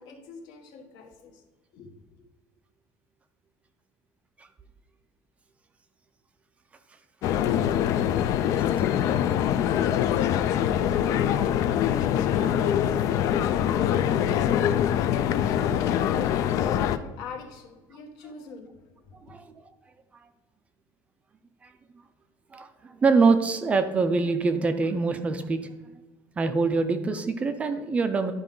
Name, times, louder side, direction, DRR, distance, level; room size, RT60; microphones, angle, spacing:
voice 1, 0.0-1.4 1.7-1.9 11.1-13.8 14.1-15.0 15.5-19.3, left 4 dB, 65° left, 1.3 m, -40 dB
sound 1, 7.2-17.0, left 10 dB, 50° left, 0.3 m, -24 dB
voice 2, 19.3-19.7 21.6-21.7 22.5-25.6 26.4-28.3, right 4 dB, 15° right, 0.4 m, -25 dB
11.5 x 4.9 x 3.7 m
cardioid pair, 180°, 7 cm